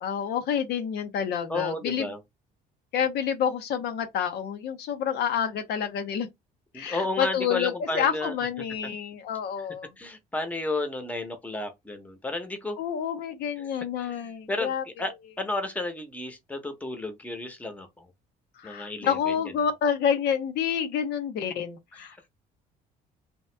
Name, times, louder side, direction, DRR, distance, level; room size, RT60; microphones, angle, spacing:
voice 1, 0.0-2.0 2.9-6.3 6.7-9.9 12.8-14.8 18.6-22.3, left 8 dB, 70° left, 0.6 m, -28 dB
voice 2, 1.5-2.2 6.7-8.5 9.6-9.7 10.0-12.8 13.6-13.7 14.0-18.1 18.6-19.4 21.9-22.0, left 2 dB, 10° left, 0.8 m, -33 dB
2.9 x 2.3 x 3.3 m
cardioid pair, 110°, 17 cm